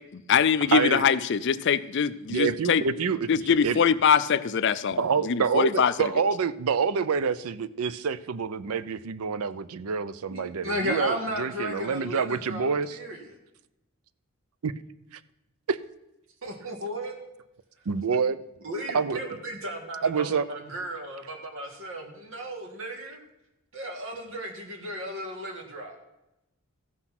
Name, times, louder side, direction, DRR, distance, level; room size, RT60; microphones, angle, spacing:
voice 1, 0.1-2.8 3.3-6.1, left 7 dB, 55° left, 14 dB, 0.4 m, -23 dB
voice 2, 0.7-1.1 2.3-3.3 3.6-3.8 5.0-13.0 14.6-14.7 15.1-15.2 15.7-15.8 17.9-18.4 18.9-19.2 20.0-20.5, right 5 dB, 80° right, 16 dB, 0.5 m, -27 dB
voice 3, 10.3-13.4 16.4-17.1 18.6-23.2 23.7-26.0, equal, 60° right, 3 dB, 1.9 m, -35 dB
14.5 x 6.1 x 5.8 m, 0.93 s
head